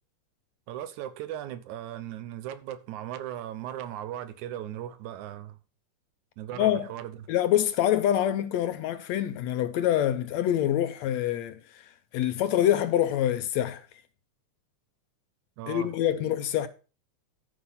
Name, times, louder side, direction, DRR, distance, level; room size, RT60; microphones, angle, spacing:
voice 1, 0.7-5.6 6.4-7.3 15.6-15.9, right 11 dB, 80° right, 2.3 m, -37 dB
voice 2, 6.6-6.9 7.3-11.6 12.1-13.8 15.7-16.7, left 11 dB, 75° left, 1.7 m, -25 dB
13.0 x 5.1 x 5.5 m
omnidirectional pair, 3.4 m